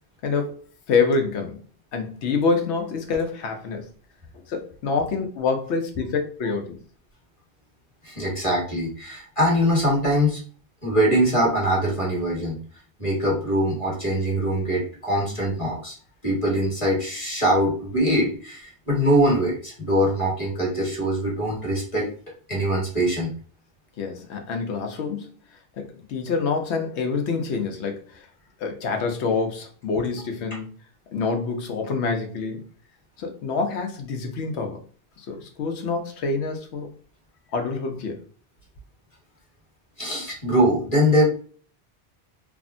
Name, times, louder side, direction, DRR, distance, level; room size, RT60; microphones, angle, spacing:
voice 1, 0.2-1.6 1.9-3.9 4.5-6.8 24.0-25.3 25.8-28.3 28.6-30.7 31.1-32.6 33.2-34.8 35.2-36.9 37.5-38.2, left 4 dB, 80° left, 0.9 m, -26 dB
voice 2, 8.0-10.4 10.8-12.6 13.0-15.9 16.2-22.1 22.5-23.3 40.0-41.2, equal, 30° left, 1.3 m, -22 dB
3.4 x 2.0 x 2.5 m
omnidirectional pair, 1.1 m